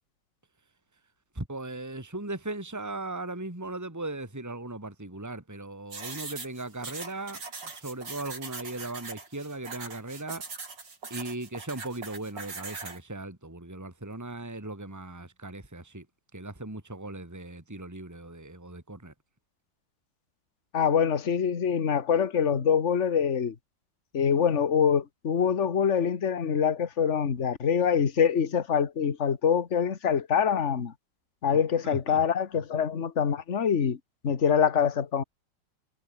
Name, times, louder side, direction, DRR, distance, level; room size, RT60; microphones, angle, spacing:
voice 1, 1.3-7.4 7.7-10.4 11.1-16.0 16.3-19.1 31.8-32.0, right 2 dB, 10° right, 2.8 m, -38 dB
sound 1, 5.9-13.0, right 4 dB, 65° right, 4.3 m, -41 dB
voice 2, 20.7-23.5 24.1-30.9 31.4-35.2, left 7 dB, 40° left, 1.8 m, -25 dB
omnidirectional pair, 2.1 m